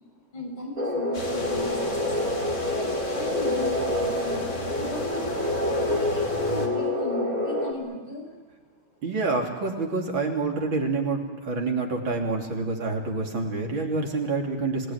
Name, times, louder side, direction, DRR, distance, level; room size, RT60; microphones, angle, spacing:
voice 1, 0.3-2.1 2.7-5.5 5.8-8.4 8.9-9.0, left 1 dB, 70° left, -1 dB, 8.0 m, -36 dB
sound 1, 0.8-7.7, left 1 dB, 20° right, 3.5 m, -27 dB
sound 2, 1.1-6.7, left 2 dB, 55° left, 3.7 m, -36 dB
voice 2, 9.0-14.9, right 3 dB, 70° right, 1 dB, 4.0 m, -27 dB
27.0 x 19.0 x 9.7 m, 1.5 s
omnidirectional pair, 2.3 m